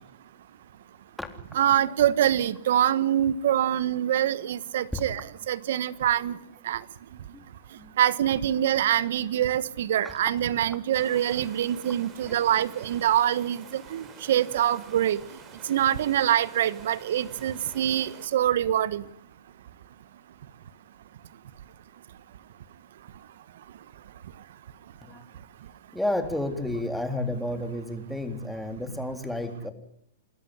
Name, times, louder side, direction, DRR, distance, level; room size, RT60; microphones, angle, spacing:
voice 1, 1.5-6.3 6.6-6.8 8.0-15.2 15.7-19.0, right 11 dB, 65° right, 17 dB, 1.4 m, -25 dB
voice 2, 10.0-10.3 12.2-12.4 25.0-25.2 25.9-29.7, left 1 dB, ahead, 6 dB, 3.6 m, -31 dB
Water, 10.9-18.3, right 5 dB, 30° right, 5.6 m, -48 dB
29.0 x 13.5 x 9.9 m, 0.72 s
hypercardioid pair, 115°, 0 cm